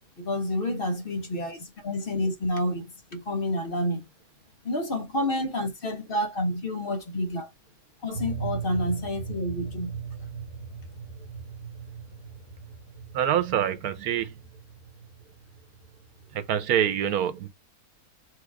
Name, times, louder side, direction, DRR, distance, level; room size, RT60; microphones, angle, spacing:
voice 1, 0.2-4.1 4.6-7.5 8.0-9.9, left 1 dB, 45° left, 0.9 m, -29 dB
sound 1, 8.1-16.7, right 6 dB, 25° right, 1.1 m, -39 dB
voice 2, 13.1-14.4 16.3-17.5, right 10 dB, 85° right, 1.2 m, -25 dB
4.7 x 2.4 x 4.5 m
omnidirectional pair, 1.5 m